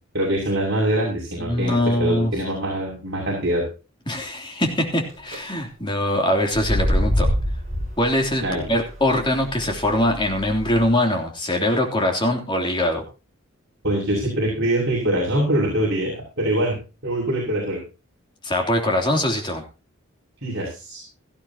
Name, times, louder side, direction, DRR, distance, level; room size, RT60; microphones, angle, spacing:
voice 1, 0.1-3.6 8.4-8.6 13.8-16.8 17.0-17.8 20.4-21.0, right 1 dB, 55° right, -4 dB, 6.5 m, -23 dB
voice 2, 1.4-2.3 4.1-7.3 8.0-8.4 8.7-13.0 18.4-19.6, left 1 dB, 25° left, 2 dB, 3.1 m, -22 dB
sound 1, 5.0-5.4 6.5-10.9, equal, 30° right, 7.3 m, -26 dB
18.0 x 14.5 x 2.9 m, 0.31 s
head